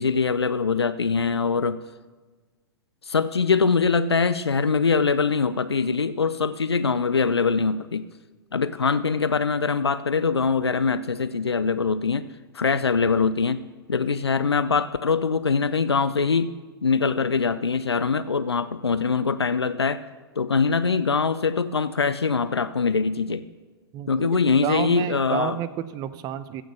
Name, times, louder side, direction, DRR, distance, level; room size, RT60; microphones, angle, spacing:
voice 1, 0.0-1.8 3.0-8.1 8.5-12.2 12.5-13.6 13.9-16.5 16.8-20.1 20.4-23.4 24.1-25.6, left 5 dB, 85° left, 13 dB, 0.5 m, -23 dB
voice 2, 23.9-26.6, right 11 dB, 30° right, 14 dB, 0.7 m, -31 dB
15.0 x 6.4 x 6.8 m, 1.3 s
figure-of-eight pair, 105°, 13 cm